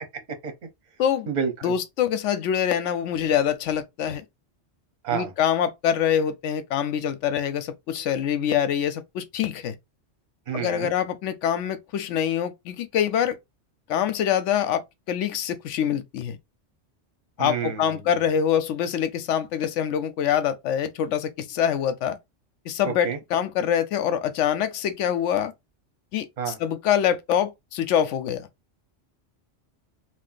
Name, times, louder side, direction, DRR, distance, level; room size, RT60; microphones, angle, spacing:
voice 1, 0.1-0.5 1.3-1.7 5.0-5.3 10.5-10.9 17.4-18.1 22.8-23.2 26.4-26.6, right 7 dB, 40° right, 0.8 m, -29 dB
voice 2, 1.6-4.2 5.1-9.8 10.5-13.4 13.9-16.4 17.4-22.2 22.7-25.5 26.1-28.5, left 9 dB, 80° left, 0.9 m, -25 dB
2.6 x 2.2 x 3.8 m
omnidirectional pair, 1.3 m